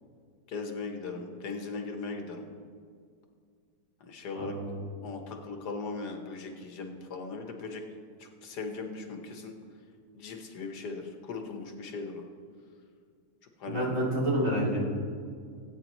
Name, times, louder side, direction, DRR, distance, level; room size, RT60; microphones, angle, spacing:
voice 1, 0.5-2.5 4.0-4.6 5.0-7.8 8.2-9.5 10.1-12.2 13.6-13.9, left 4 dB, 90° left, 4 dB, 1.7 m, -38 dB
voice 2, 4.3-4.7 13.7-14.8, right 1 dB, 55° right, -6 dB, 3.4 m, -28 dB
18.5 x 8.9 x 3.0 m, 2.2 s
omnidirectional pair, 1.7 m